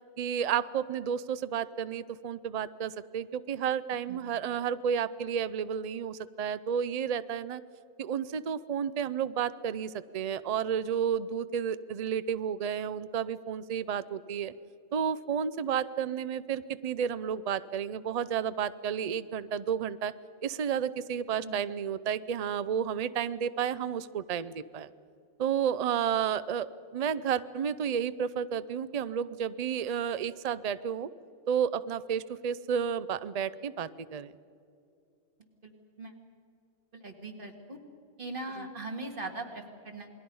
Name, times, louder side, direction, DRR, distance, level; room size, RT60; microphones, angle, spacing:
voice 1, 0.2-7.6 8.0-14.5 14.9-20.1 20.4-24.9 25.4-31.1 31.5-34.3 38.6-38.7, right 8 dB, 85° right, 15 dB, 0.3 m, -31 dB
voice 2, 36.9-37.8 38.2-40.1, right 2 dB, 40° right, 4 dB, 2.3 m, -40 dB
28.0 x 21.0 x 5.5 m, 2.5 s
omnidirectional pair, 1.4 m